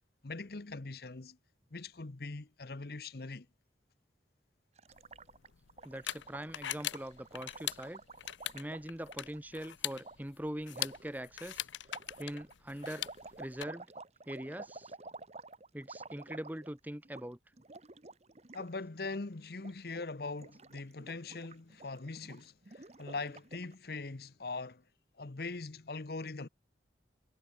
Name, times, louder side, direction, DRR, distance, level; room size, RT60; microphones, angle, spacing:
voice 1, 0.2-1.4 1.7-3.5 18.5-24.8 25.2-26.5, left 3 dB, 55° left, 0.9 m, -41 dB
Gurgling, 4.8-9.4 10.0-10.2 10.7-11.1 11.8-16.8 17.0-17.2 17.5-18.7 18.9-19.2 19.5-20.0 20.3-23.7, right 3 dB, 35° right, 1.2 m, -51 dB
sound 1, 4.9-13.6, left 13 dB, 90° left, 0.7 m, -42 dB
voice 2, 5.8-8.0 8.5-11.7 12.2-13.1 13.4-13.9 14.3-14.9 15.7-17.4, right 1 dB, 10° right, 1.1 m, -42 dB
head